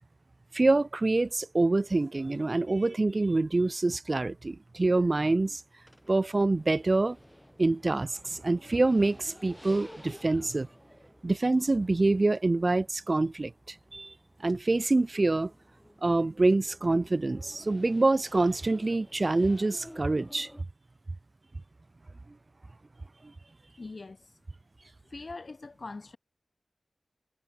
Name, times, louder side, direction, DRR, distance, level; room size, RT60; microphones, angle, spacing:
voice 1, 0.5-5.6 6.1-7.2 7.6-10.7 11.2-14.1 14.4-15.5 16.0-20.5, right 2 dB, 45° right, 0.5 m, -26 dB
sound 1, 5.9-20.6, equal, 5° left, 4.2 m, -53 dB
voice 2, 23.8-24.3 25.1-26.2, left 3 dB, 60° left, 0.9 m, -42 dB
cardioid pair, 50°, 0 cm